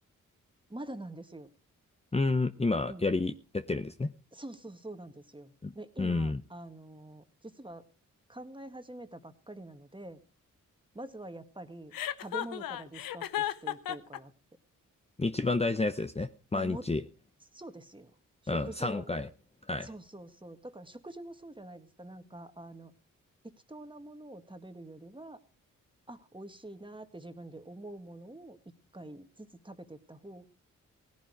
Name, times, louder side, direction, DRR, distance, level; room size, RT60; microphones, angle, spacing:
voice 1, 0.7-1.5 2.9-3.1 4.3-7.8 8.3-10.2 10.9-12.0 12.2-14.3 16.5-16.9 17.5-18.1 18.4-19.1 19.8-22.9 23.4-25.4 26.1-28.6 28.9-30.5, right 1 dB, 15° right, 9 dB, 1.9 m, -45 dB
voice 2, 2.1-4.1 5.6-5.7 6.0-6.4 15.2-17.0 18.5-19.3 19.7-19.9, left 3 dB, 20° left, 10 dB, 0.8 m, -30 dB
Chuckle chortle, 11.9-14.2, left 12 dB, 80° left, 0.8 m, -34 dB
17.0 x 10.5 x 4.9 m, 0.36 s
supercardioid pair, 40°, 34 cm